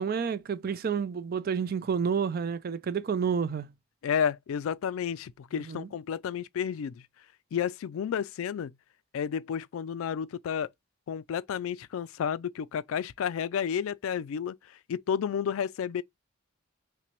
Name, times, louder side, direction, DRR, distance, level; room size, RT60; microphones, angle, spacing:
voice 1, 0.0-3.7 5.7-5.9, right 6 dB, 45° right, 0.4 m, -29 dB
voice 2, 4.0-7.0 7.5-8.7 9.1-10.7 11.1-16.0, left 8 dB, 75° left, 0.3 m, -31 dB
5.8 x 2.2 x 3.0 m
head